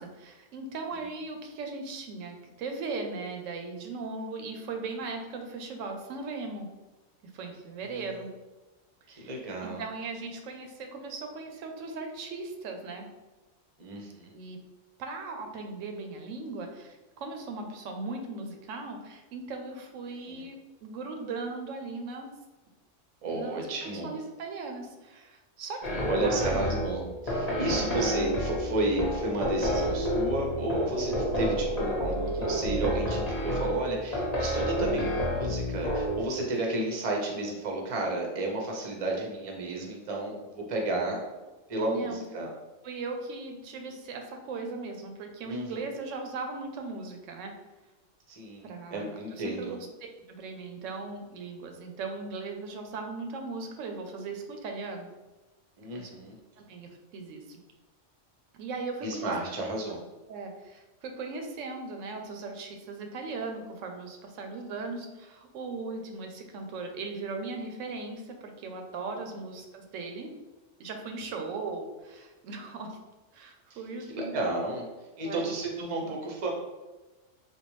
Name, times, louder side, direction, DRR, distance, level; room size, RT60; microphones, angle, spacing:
voice 1, 0.0-6.7 7.2-8.3 9.1-13.1 14.3-14.6 15.0-22.3 23.3-26.8 27.6-28.0 41.9-42.2 42.8-47.5 48.6-49.8 50.3-55.1 55.9-56.1 56.7-57.6 58.6-59.3 59.9-60.0 60.3-70.3 70.8-73.0 73.3-74.4 75.2-75.5 76.0-76.1, right 3 dB, 90° right, 4 dB, 0.9 m, -38 dB
voice 2, 9.1-9.8 13.8-14.3 20.3-20.5 23.2-24.2 26.1-41.2 41.7-42.5 45.4-45.9 48.3-49.8 55.8-56.4 59.0-60.0 74.1-74.8 75.2-76.5, right 2 dB, 40° right, 0 dB, 0.6 m, -32 dB
sound 1, 25.8-36.2, equal, 40° left, 0.7 m, -29 dB
3.5 x 2.3 x 3.0 m, 1.1 s
omnidirectional pair, 1.3 m